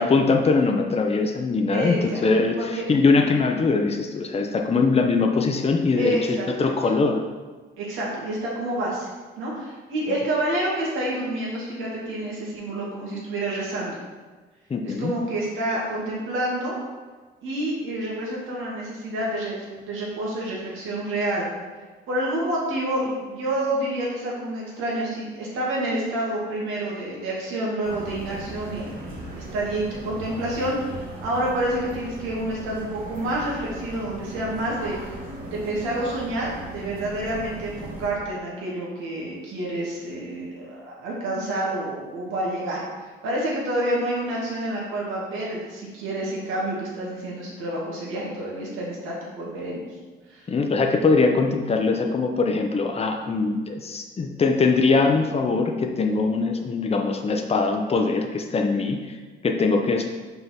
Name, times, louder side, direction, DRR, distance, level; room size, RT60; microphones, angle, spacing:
voice 1, 0.0-7.2 10.1-10.2 14.7-15.1 50.5-60.1, left 4 dB, 30° left, 3 dB, 0.8 m, -22 dB
voice 2, 1.7-2.2 2.6-2.8 5.9-6.7 7.8-9.1 9.4-14.0 14.8-16.8 17.4-21.5 22.1-35.0 35.5-49.8 50.3-50.5, right 1 dB, 90° right, -5 dB, 2.1 m, -28 dB
sound 1, 27.8-38.1, right 2 dB, 45° right, 2.0 m, -38 dB
5.7 x 3.9 x 5.9 m, 1.4 s
cardioid pair, 90°, 20 cm